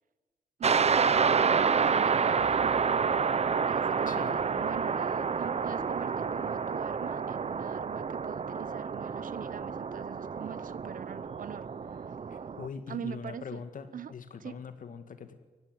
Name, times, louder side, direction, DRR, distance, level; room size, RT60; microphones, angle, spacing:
sound 1, 0.6-12.7, right 6 dB, 50° right, 0.8 m, -29 dB
voice 1, 0.6-3.1 3.7-12.1 12.9-13.6 13.9-14.1 14.4-14.5, right 8 dB, 85° right, 16 dB, 0.9 m, -43 dB
sound 2, 2.4-11.5, left 1 dB, 10° left, 7.6 m, -57 dB
voice 2, 4.1-4.4 12.3-15.3, left 6 dB, 80° left, 9 dB, 2.0 m, -42 dB
23.0 x 16.0 x 9.3 m, 1.3 s
wide cardioid pair, 105°, 14 cm